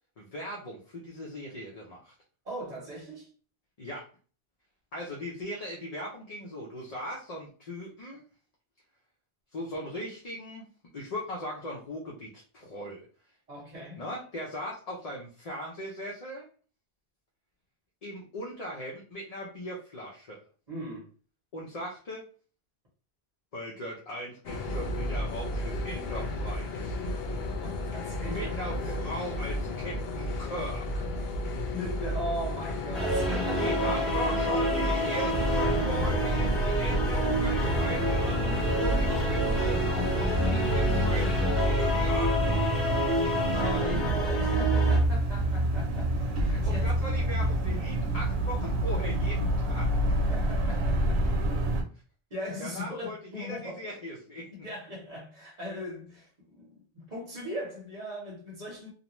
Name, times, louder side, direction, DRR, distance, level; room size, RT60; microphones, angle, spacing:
voice 1, 0.2-2.1 3.8-4.1 4.9-8.2 9.5-10.7 10.9-13.0 14.0-16.4 18.0-20.4 21.5-22.2 23.5-27.0 28.3-31.0 33.5-42.6 46.5-49.9 52.6-54.5, equal, 45° left, 0.6 m, -39 dB
voice 2, 2.4-3.3 13.5-14.0 20.7-21.1 27.5-29.0 31.7-34.2 43.5-46.9 47.2-47.3 50.1-51.3 52.3-53.8 54.5-58.9, equal, 45° right, 0.9 m, -39 dB
sound 1, 24.4-41.4, left 1 dB, 75° left, 0.8 m, -33 dB
sound 2, 32.9-45.0, equal, ahead, 0.6 m, -29 dB
sound 3, 35.3-51.8, right 1 dB, 85° right, 0.9 m, -28 dB
2.5 x 2.1 x 2.9 m
omnidirectional pair, 1.0 m